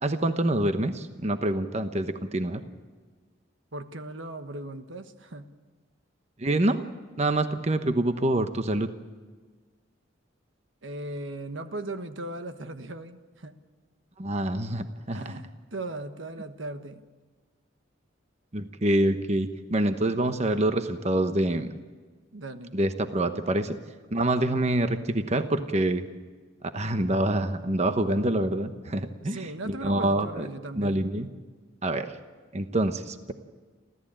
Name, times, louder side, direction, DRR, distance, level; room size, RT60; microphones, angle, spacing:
voice 1, 0.0-2.6 6.4-6.8 7.2-8.9 14.2-15.4 18.5-21.7 22.7-23.8 24.1-26.1 26.6-30.5 30.8-31.3 31.8-32.2 32.5-33.3, right 1 dB, 35° right, 8 dB, 1.0 m, -26 dB
voice 2, 3.7-5.5 10.8-13.5 15.1-17.0 22.3-22.8 29.2-31.0, right 2 dB, 80° right, 8 dB, 1.4 m, -38 dB
29.5 x 14.0 x 8.8 m, 1.4 s
head